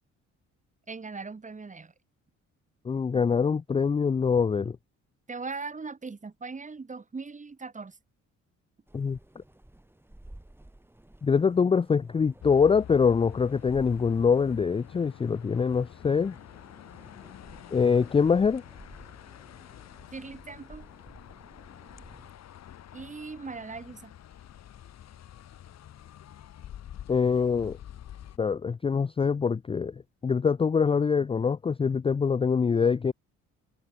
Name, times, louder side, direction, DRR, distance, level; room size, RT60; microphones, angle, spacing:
voice 1, 0.9-1.9 5.3-8.0 20.1-20.9 22.9-24.1, right 4 dB, 25° right, 2.0 m, -39 dB
voice 2, 2.9-4.8 8.9-9.2 11.2-16.3 17.7-18.6 27.1-27.8 28.4-29.9 30.2-33.1, left 5 dB, 20° left, 0.4 m, -24 dB
sound 1, 8.9-22.3, right 1 dB, 5° right, 2.7 m, -53 dB
sound 2, 12.4-28.4, left 11 dB, 60° left, 1.4 m, -47 dB
cardioid pair, 90°, 30 cm